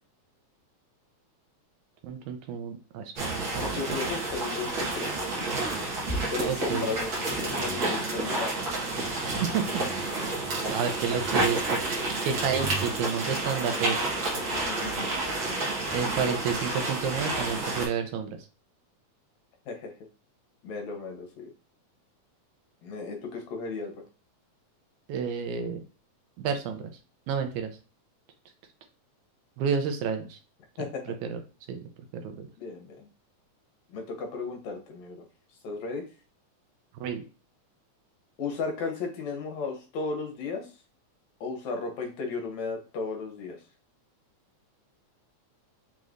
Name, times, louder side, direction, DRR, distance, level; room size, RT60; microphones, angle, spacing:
voice 1, 2.0-3.8 6.4-6.9 9.2-9.6 9.9-10.1 10.7-11.8 12.2-14.1 15.9-18.4 25.1-25.8 26.4-26.9 27.3-27.7 29.6-30.4 31.2-31.4 31.7-31.8 32.1-32.5 37.0-37.2, right 7 dB, 80° right, 6 dB, 1.9 m, -30 dB
sound 1, 3.2-17.9, right 2 dB, 55° right, 1.5 m, -30 dB
voice 2, 3.6-5.2 6.3-8.5 10.2-10.4 14.4-15.1 19.7-19.9 20.6-21.5 22.8-23.9 30.8-31.0 32.6-33.1 33.9-35.2 35.6-36.0 38.4-40.7 41.4-43.6, left 4 dB, 70° left, 2 dB, 2.0 m, -35 dB
5.2 x 3.1 x 2.4 m, 0.34 s
omnidirectional pair, 3.5 m